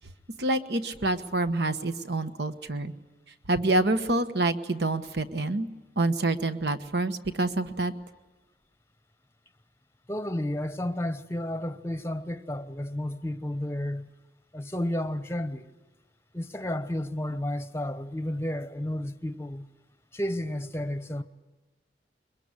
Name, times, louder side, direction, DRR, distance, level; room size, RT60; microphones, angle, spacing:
voice 1, 0.4-2.9 3.5-5.7 6.0-7.9, right 2 dB, 65° right, 1.3 m, -27 dB
voice 2, 10.1-14.1 14.5-15.7 16.3-19.7 20.1-21.2, left 1 dB, 15° left, 0.9 m, -32 dB
22.5 x 21.5 x 9.8 m
head